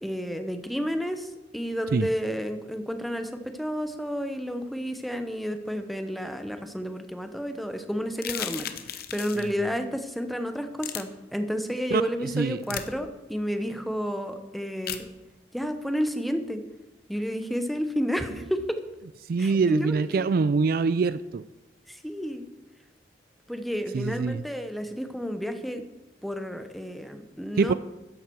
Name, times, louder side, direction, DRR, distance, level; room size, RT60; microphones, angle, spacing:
voice 1, 0.0-15.1 15.5-16.6 17.1-18.8 19.4-20.5 21.9-22.4 23.5-25.8 26.2-27.7, equal, ahead, 8 dB, 0.9 m, -31 dB
sound 1, 8.1-9.5 10.8-11.0 12.6-12.9 14.9-15.0, left 10 dB, 55° left, 0.9 m, -34 dB
voice 2, 11.9-12.6 19.3-21.4 23.9-24.4 27.6-27.7, right 4 dB, 55° right, 16 dB, 0.3 m, -24 dB
13.5 x 10.5 x 4.6 m, 1.0 s
head